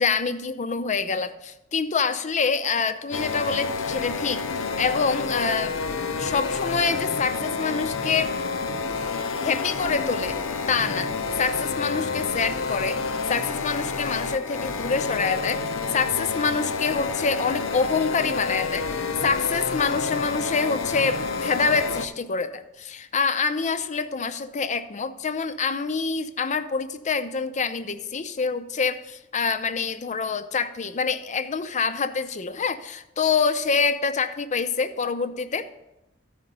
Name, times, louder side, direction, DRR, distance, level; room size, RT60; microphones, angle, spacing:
voice 1, 0.0-5.7 6.2-8.3 9.4-10.4 10.7-11.1 11.4-13.0 13.3-35.7, left 5 dB, 35° left, 11 dB, 0.5 m, -26 dB
sound 1, 3.1-22.1, left 4 dB, 85° left, 0.6 m, -29 dB
13.5 x 5.1 x 5.3 m, 0.93 s
head